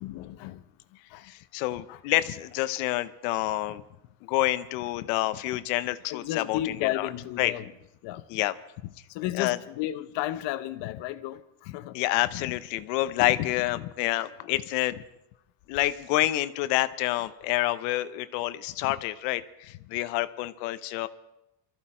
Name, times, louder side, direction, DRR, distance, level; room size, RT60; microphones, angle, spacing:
voice 1, 0.0-0.6 1.1-1.3 1.9-2.0 6.1-7.7 8.0-8.3 9.1-12.0, left 14 dB, 60° left, 0.9 m, -33 dB
voice 2, 1.2-3.8 4.2-6.6 6.9-7.1 7.4-7.5 8.3-8.5 9.4-9.6 11.9-15.0 15.7-21.1, left 16 dB, 85° left, 0.9 m, -28 dB
23.0 x 14.0 x 4.4 m
cardioid pair, 160°, 49 cm